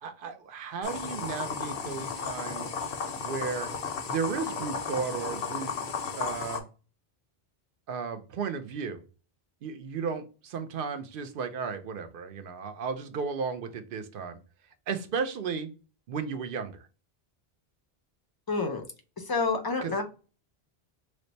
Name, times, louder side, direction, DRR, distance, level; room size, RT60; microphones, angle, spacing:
voice 1, 0.0-2.8 3.2-3.7 4.1-5.7 6.2-6.7 7.9-9.0 9.6-14.4 14.9-15.7 16.1-16.8 19.8-19.9, right 5 dB, 65° right, 8 dB, 0.7 m, -34 dB
sound 1, 0.8-6.6, left 6 dB, 80° left, 0.9 m, -34 dB
voice 2, 18.5-18.8 19.2-20.0, left 4 dB, 35° left, 4 dB, 0.4 m, -28 dB
3.2 x 2.1 x 3.9 m, 0.35 s
omnidirectional pair, 1.1 m